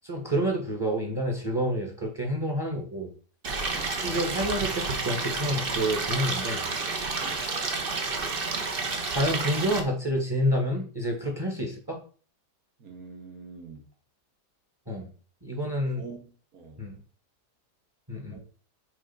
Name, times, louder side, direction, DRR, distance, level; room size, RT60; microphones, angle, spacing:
voice 1, 0.0-3.1 4.0-6.7 9.1-12.0 14.9-15.1 15.4-16.0 16.8-16.9 18.1-18.4, equal, 15° right, 1 dB, 1.2 m, -28 dB
Stream, 3.4-9.8, right 4 dB, 40° right, 1.0 m, -30 dB
voice 2, 12.8-13.8 16.0-16.2 16.5-16.8 18.3-18.4, right 4 dB, 55° right, 3 dB, 2.0 m, -44 dB
6.3 x 3.7 x 5.4 m, 0.40 s
omnidirectional pair, 1.8 m